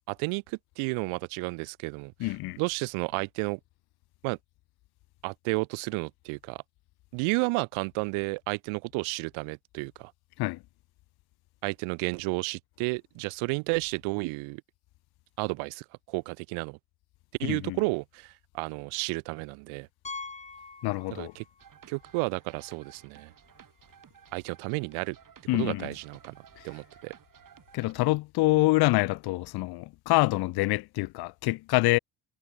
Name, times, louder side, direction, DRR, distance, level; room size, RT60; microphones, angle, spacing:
voice 1, 0.0-3.6 4.2-4.4 5.2-6.6 7.1-10.1 11.6-14.6 15.4-16.8 17.4-19.9 21.1-21.4 21.9-23.3 24.3-25.2 25.5-26.4 26.6-27.1, right 29 dB, 90° right, 2.8 m, -32 dB
voice 2, 2.2-2.6 10.4-10.6 17.4-17.8 20.8-21.3 25.5-25.9 27.7-32.0, left 20 dB, 55° left, 0.5 m, -26 dB
Piano, 20.0-21.6 21.9-22.1 22.7-22.8 23.0-23.1 25.2-25.3, left 4 dB, 15° left, 1.2 m, -43 dB
sound 1, 21.6-27.9, right 8 dB, 45° right, 7.2 m, -55 dB
cardioid pair, 95°, 47 cm